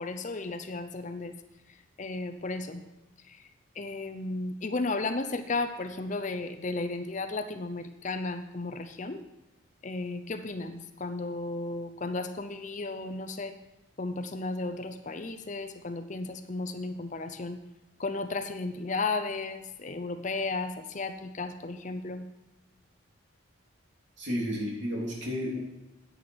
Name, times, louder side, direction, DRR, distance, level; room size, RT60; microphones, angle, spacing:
voice 1, 0.0-1.4 2.0-2.8 3.3-3.4 3.8-9.2 9.8-13.5 14.0-17.6 18.0-22.3, left 3 dB, 35° left, 8 dB, 0.6 m, -34 dB
voice 2, 24.2-25.6, equal, 60° right, -3 dB, 3.2 m, -32 dB
10.0 x 8.8 x 4.7 m, 1.0 s
head